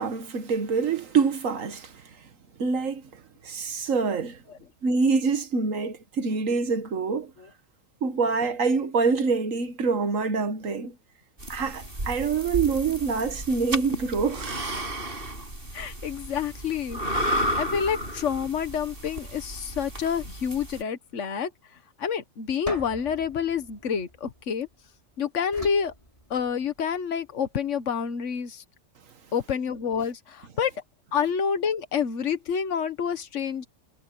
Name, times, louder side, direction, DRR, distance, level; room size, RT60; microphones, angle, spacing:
voice 1, 0.0-2.0 2.6-4.4 4.8-7.3 8.0-10.9 11.5-14.6, right 5 dB, 90° right, 1.8 m, -26 dB
sound 1, 11.4-20.8, equal, 45° right, 6.0 m, -33 dB
voice 2, 15.7-17.0 17.6-21.5 22.0-24.7 25.2-25.9 26.3-28.6 29.3-30.7 31.1-33.7, left 7 dB, 70° left, 1.6 m, -28 dB
sound 2, 22.7-24.9 25.5-26.9, left 1 dB, 25° left, 5.7 m, -41 dB
omnidirectional pair, 1.3 m